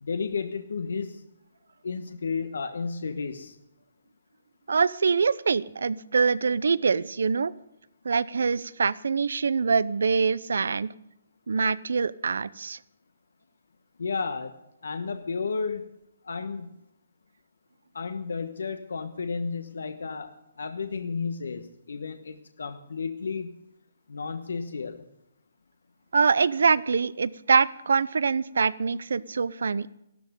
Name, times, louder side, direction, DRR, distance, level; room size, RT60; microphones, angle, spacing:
voice 1, 0.0-1.2 1.8-3.5 14.0-15.8 16.2-16.7 17.9-23.5 24.1-25.0, left 5 dB, 85° left, 8 dB, 1.2 m, -32 dB
voice 2, 4.7-7.5 8.0-10.9 11.5-12.8 26.1-29.9, right 5 dB, 80° right, 20 dB, 0.6 m, -24 dB
14.0 x 12.5 x 5.3 m, 0.83 s
hypercardioid pair, 170°, 0 cm